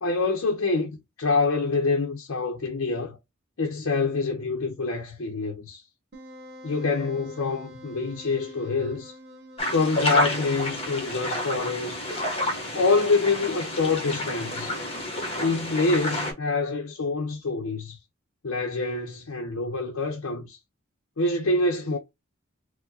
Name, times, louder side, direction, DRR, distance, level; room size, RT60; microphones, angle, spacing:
voice 1, 0.0-3.2 3.6-5.8 6.6-9.2 9.7-12.0 12.7-14.8 15.4-18.0 18.4-20.6 21.2-22.0, left 3 dB, 80° left, 0.6 m, -26 dB
Wind instrument woodwind instrument, 6.1-11.5, equal, 50° right, 0.9 m, -47 dB
sound 1, 9.6-16.3, left 1 dB, 30° left, 1.2 m, -29 dB
4.4 x 2.1 x 2.7 m
head